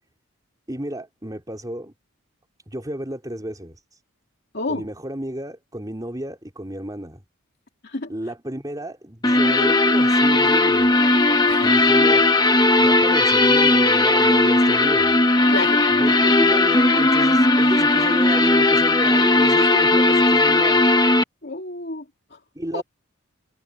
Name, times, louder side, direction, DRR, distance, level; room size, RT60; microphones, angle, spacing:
voice 1, 0.7-1.9 2.7-4.0 4.6-7.2 8.1-10.9 11.6-12.3 12.8-15.2 15.9-20.8 22.5-22.8, right 1 dB, 15° right, 3.9 m, -31 dB
voice 2, 4.5-4.9 7.8-8.1 11.5-11.8 15.5-15.8 19.1-19.4 21.4-22.4 22.7-22.8, left 2 dB, 50° left, 2.8 m, -31 dB
sound 1, 9.2-21.2, left 2 dB, 20° left, 1.5 m, -17 dB
head